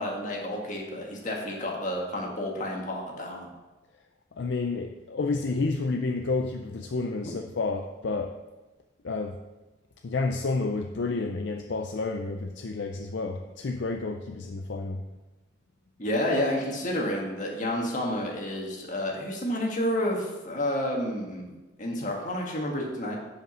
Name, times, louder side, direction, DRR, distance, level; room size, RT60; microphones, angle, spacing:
voice 1, 0.0-3.5 16.0-23.2, left 1 dB, 40° left, -1 dB, 1.7 m, -30 dB
voice 2, 4.4-8.3 9.0-9.4 10.0-15.0, left 3 dB, 60° left, 4 dB, 0.5 m, -30 dB
7.7 x 5.2 x 6.2 m, 1.1 s
head